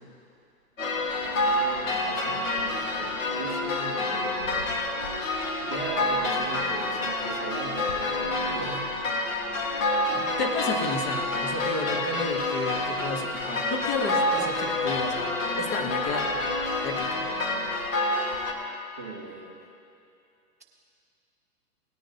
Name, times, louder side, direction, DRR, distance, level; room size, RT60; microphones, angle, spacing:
sound 1, 0.8-18.5, left 2 dB, 55° left, 1.6 m, -28 dB
voice 1, 1.0-4.7 5.0-5.1 5.6-8.9 19.0-19.6, right 4 dB, 10° right, -4 dB, 0.3 m, -39 dB
voice 2, 9.8-16.3 16.8-17.3, left 2 dB, 30° left, 2 dB, 1.3 m, -32 dB
18.5 x 10.0 x 2.8 m, 2.6 s
hypercardioid pair, 130°, 47 cm